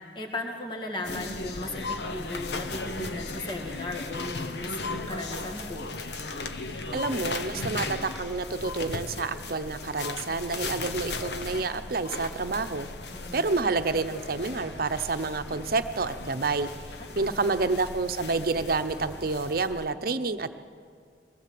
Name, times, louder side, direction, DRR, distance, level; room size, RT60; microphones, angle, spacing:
voice 1, 0.1-5.9 13.1-13.5 17.0-17.4, left 2 dB, 30° left, 1 dB, 2.2 m, -36 dB
sound 1, 1.0-19.9, left 3 dB, 70° left, 1.1 m, -37 dB
voice 2, 6.9-12.9 13.3-16.7 17.1-20.5, right 3 dB, 55° right, 9 dB, 0.8 m, -29 dB
22.5 x 17.5 x 7.7 m, 2.2 s
head